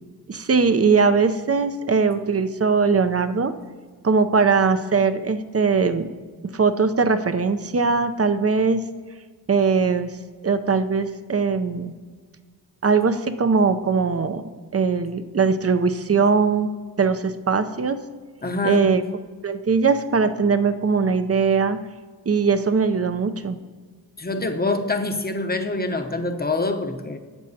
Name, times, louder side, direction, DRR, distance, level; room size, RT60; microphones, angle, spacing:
voice 1, 0.3-3.5 4.0-6.1 6.5-8.8 9.5-10.1 10.4-11.9 12.8-14.4 14.7-16.7 17.0-18.0 18.6-19.0 19.4-21.8 22.3-23.6, right 5 dB, 35° right, 10 dB, 0.6 m, -20 dB
voice 2, 18.4-18.9 24.2-27.2, left 3 dB, 25° left, 5 dB, 0.8 m, -25 dB
11.5 x 7.6 x 2.8 m, 1.5 s
cardioid pair, 60°, 40 cm